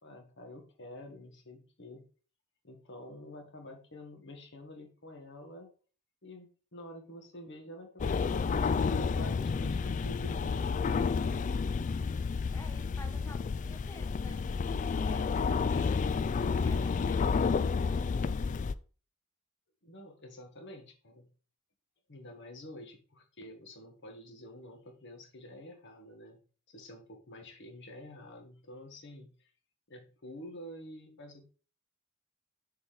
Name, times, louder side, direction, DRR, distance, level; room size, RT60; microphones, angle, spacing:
voice 1, 0.0-2.1 2.6-5.7 6.2-12.0 19.8-21.3 22.1-26.4 26.7-29.5 29.9-31.4, left 1 dB, 55° left, 1.8 m, -49 dB
sound 1, 8.0-18.7, left 5 dB, 35° left, 0.3 m, -30 dB
voice 2, 12.5-16.2 16.6-17.5, left 1 dB, 15° left, 1.2 m, -52 dB
6.7 x 4.0 x 5.1 m
head